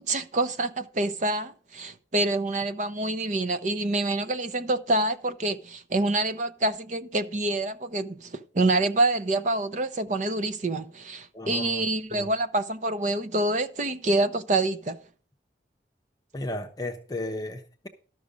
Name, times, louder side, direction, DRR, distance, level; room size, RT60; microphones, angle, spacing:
voice 1, 0.0-15.0, right 2 dB, 40° right, 0.6 m, -27 dB
voice 2, 11.3-12.3 16.3-17.9, left 1 dB, 20° left, 0.7 m, -35 dB
12.5 x 6.2 x 5.1 m
head